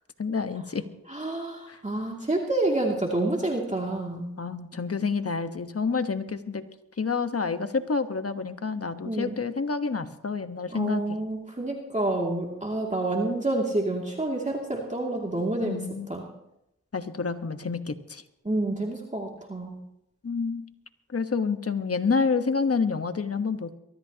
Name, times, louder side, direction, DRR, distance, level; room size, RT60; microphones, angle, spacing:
voice 1, 0.2-0.8 1.7-1.8 4.4-6.6 7.0-11.2 15.6-16.1 16.9-18.2 20.2-20.6 21.1-23.7, left 5 dB, 45° left, 9 dB, 1.2 m, -28 dB
voice 2, 1.1-4.3 9.0-9.4 10.7-15.8 16.1-16.2 18.4-19.8, right 2 dB, 20° right, -1 dB, 2.5 m, -28 dB
23.0 x 13.5 x 2.9 m, 0.82 s
cardioid pair, 40°, 32 cm